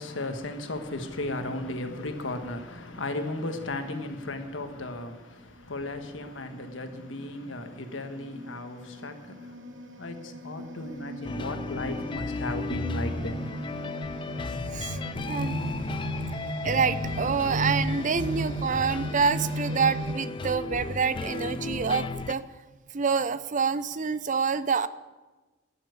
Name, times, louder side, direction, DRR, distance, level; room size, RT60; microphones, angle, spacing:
voice 1, 0.0-9.6 10.0-13.5, left 2 dB, 75° left, 1.4 m, -35 dB
sound 1, 5.6-5.8 6.4-20.1, right 1 dB, 65° right, 1.2 m, -36 dB
sound 2, 11.2-22.3, left 3 dB, 25° left, 0.4 m, -35 dB
voice 2, 15.2-15.6 16.6-22.4 22.9-24.9, right 5 dB, 40° right, 0.5 m, -27 dB
12.5 x 7.3 x 9.6 m
head